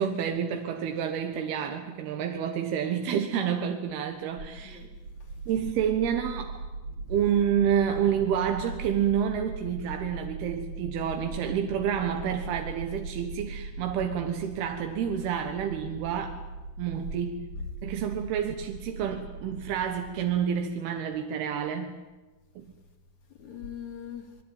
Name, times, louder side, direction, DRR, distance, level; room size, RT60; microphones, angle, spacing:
voice 1, 0.0-4.8 5.5-6.6 7.1-16.4 16.8-17.4 17.8-21.9 22.6-22.7, right 8 dB, 90° right, 5 dB, 3.3 m, -29 dB
sound 1, 4.4-20.4, right 3 dB, 60° right, 4.1 m, -40 dB
voice 2, 4.6-5.4 6.9-7.1 17.5-17.6 23.4-24.4, left 7 dB, 50° left, 4 dB, 3.8 m, -42 dB
29.0 x 20.5 x 9.2 m, 1.2 s
omnidirectional pair, 4.4 m